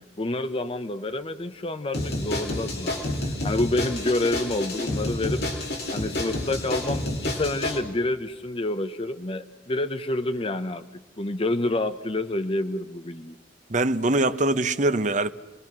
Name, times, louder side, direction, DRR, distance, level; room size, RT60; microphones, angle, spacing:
voice 1, 0.0-5.4 5.9-10.8 11.2-13.3, left 2 dB, 30° left, 0.8 m, -28 dB
sound 1, 1.9-7.8, left 1 dB, 60° left, 4.0 m, -29 dB
voice 2, 13.7-15.3, right 2 dB, 45° right, 0.8 m, -23 dB
29.5 x 20.5 x 6.1 m
head